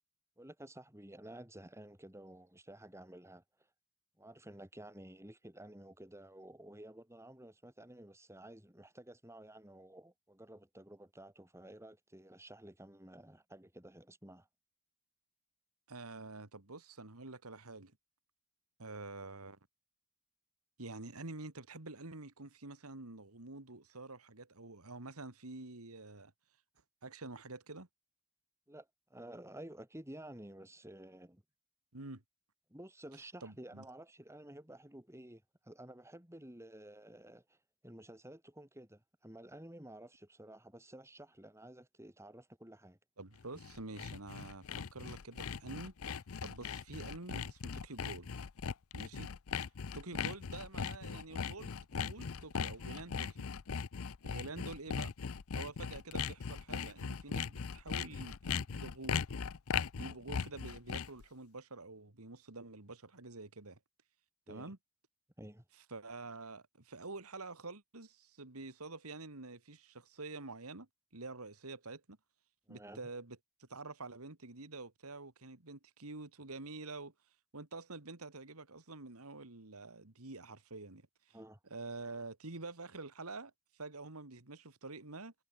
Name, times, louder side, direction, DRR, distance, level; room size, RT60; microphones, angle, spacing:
voice 1, 0.4-3.4 4.2-14.5 28.7-31.4 32.7-37.6 37.8-43.0 60.3-60.4 64.5-64.7 65.4-65.6 72.7-73.0 81.3-81.6, right 1 dB, 10° right, 3.3 m, -52 dB
voice 2, 15.9-18.0 18.8-19.6 20.8-26.3 27.0-27.9 31.9-32.2 33.4-33.8 43.2-45.9 46.4-48.4 48.9-49.3 49.9-53.5 54.2-55.1 55.5-59.4 60.0-63.8 64.5-64.8 65.9-70.9 71.1-72.2 72.7-77.1 77.5-81.4 81.7-85.3, right 3 dB, 90° right, 2.5 m, -48 dB
Sawing, 43.4-61.2, left 6 dB, 75° left, 0.6 m, -39 dB
head